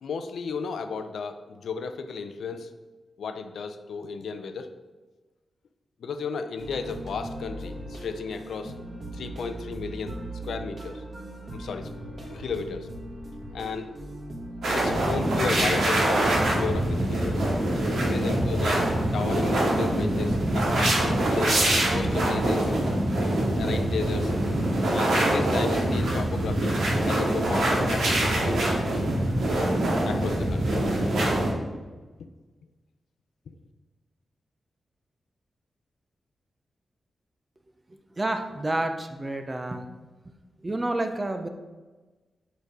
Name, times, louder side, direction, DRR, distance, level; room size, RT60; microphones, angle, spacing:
voice 1, 0.0-2.7 3.2-4.7 6.0-8.7 9.1-10.2 10.4-11.0 11.5-12.9 13.5-13.9 14.7-17.5 17.8-22.7 23.6-24.3 24.9-26.8 27.1-28.6 30.0-30.8, left 5 dB, 80° left, 8 dB, 0.5 m, -34 dB
sound 1, 6.6-15.1, right 1 dB, 35° right, 1.2 m, -39 dB
sound 2, 14.6-31.5, right 1 dB, 85° right, 2.0 m, -24 dB
voice 2, 38.1-39.8 40.6-41.5, right 2 dB, 20° right, 6 dB, 0.5 m, -29 dB
6.6 x 5.2 x 4.7 m, 1.3 s
wide cardioid pair, 160°, 0 cm